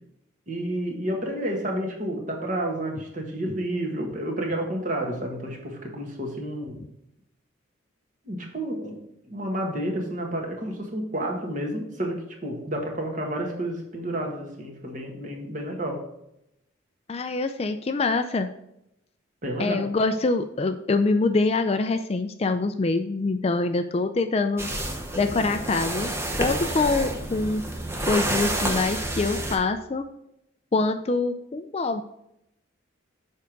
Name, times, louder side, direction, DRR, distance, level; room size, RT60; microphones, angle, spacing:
voice 1, 0.5-6.8 8.2-9.0 9.3-16.0 19.4-19.9, right 1 dB, 40° right, 1 dB, 1.5 m, -30 dB
voice 2, 17.1-18.5 19.6-24.7 25.2-26.1 26.4-27.7 28.1-30.0 30.7-32.0, left 3 dB, 30° left, 8 dB, 0.3 m, -25 dB
sound 1, 24.6-29.6, right 1 dB, 10° right, 0.8 m, -29 dB
6.9 x 4.7 x 5.1 m, 0.81 s
head